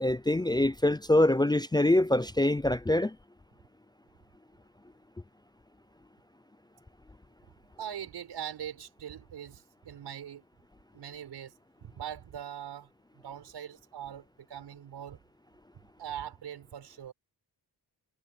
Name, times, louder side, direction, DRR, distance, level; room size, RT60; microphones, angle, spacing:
voice 1, 0.0-3.1, left 1 dB, 10° left, 0.5 m, -24 dB
voice 2, 7.8-10.4 10.9-11.5 11.8-12.9 13.1-15.2 16.0-17.1, right 9 dB, 90° right, 6.3 m, -41 dB
cardioid pair, 95°, 40 cm